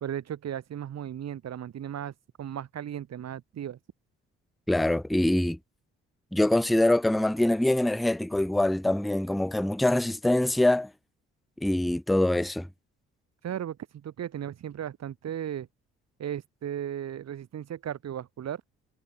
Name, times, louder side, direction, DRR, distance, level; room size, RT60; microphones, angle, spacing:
voice 1, 0.0-3.8 13.4-15.7 16.2-18.6, right 10 dB, 60° right, 2.3 m, -36 dB
voice 2, 4.7-5.6 6.3-10.9 11.6-12.7, left 1 dB, ahead, 0.4 m, -24 dB
hypercardioid pair, 55°, 30 cm